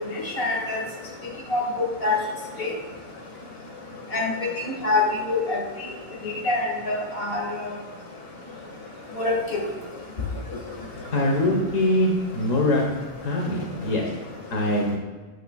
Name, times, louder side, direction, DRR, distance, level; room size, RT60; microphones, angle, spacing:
voice 1, 0.4-0.8 1.5-1.6 2.0-2.1 2.6-2.7 4.1-4.5 4.8-5.6 6.4-7.4 9.2-9.6, left 3 dB, 45° left, -2 dB, 2.1 m, -24 dB
voice 2, 11.1-12.8 13.2-14.1 14.5-15.0, left 1 dB, 75° left, 0 dB, 1.6 m, -23 dB
12.5 x 9.9 x 2.3 m, 1.3 s
omnidirectional pair, 1.3 m